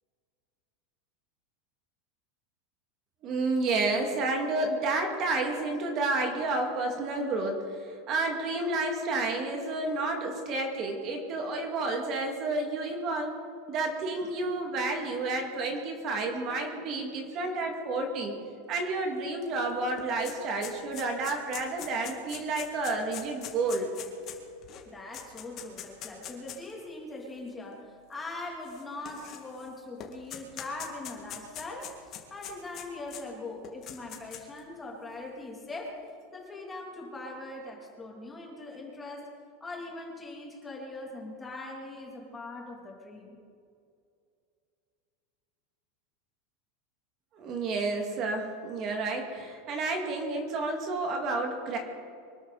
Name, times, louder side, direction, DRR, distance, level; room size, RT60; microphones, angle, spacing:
voice 1, 3.2-13.3 13.7-18.3 18.7-23.9 47.3-51.8, right 2 dB, 40° right, 2 dB, 2.4 m, -30 dB
sound 1, 19.4-19.5 19.8-26.7 27.5-27.6 28.6-29.7 30.0-33.2 33.6-34.6, left 10 dB, 35° left, 2.3 m, -42 dB
voice 2, 24.9-36.0 36.3-39.3 39.6-43.4, left 2 dB, 15° left, -1 dB, 3.0 m, -41 dB
24.0 x 13.0 x 4.2 m, 2.4 s
supercardioid pair, 145°, 0 cm